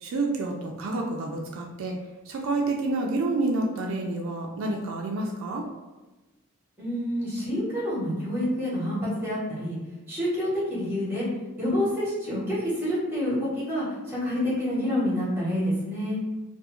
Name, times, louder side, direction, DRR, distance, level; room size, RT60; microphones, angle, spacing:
voice 1, 0.0-2.0 2.3-5.7, right 2 dB, 65° right, 0 dB, 0.3 m, -28 dB
voice 2, 6.8-9.8 10.1-11.3 11.6-16.2, left 1 dB, 10° right, -7 dB, 0.9 m, -28 dB
2.4 x 2.3 x 2.9 m, 1.1 s
head